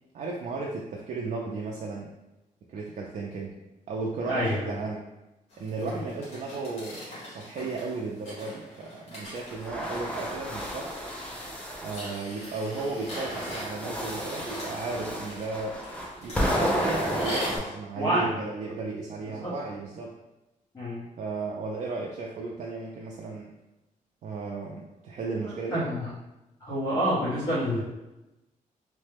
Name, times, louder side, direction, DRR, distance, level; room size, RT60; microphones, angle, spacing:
voice 1, 0.1-2.1 2.7-3.5 3.9-5.0 5.6-11.0 11.8-15.8 16.2-20.2 21.2-23.5 24.2-25.8, right 3 dB, 55° right, -2 dB, 0.4 m, -35 dB
voice 2, 4.2-4.7 5.8-6.0 17.9-18.3 19.3-19.5 20.7-21.0 25.7-26.1 26.6-27.8, equal, 25° left, -11 dB, 1.0 m, -27 dB
sound 1, 5.5-17.6, equal, 45° left, 1.4 m, -42 dB
sound 2, 9.5-12.1 12.7-17.6, equal, 10° left, 0.4 m, -32 dB
3.1 x 2.1 x 3.3 m, 1.0 s
wide cardioid pair, 170°, 14 cm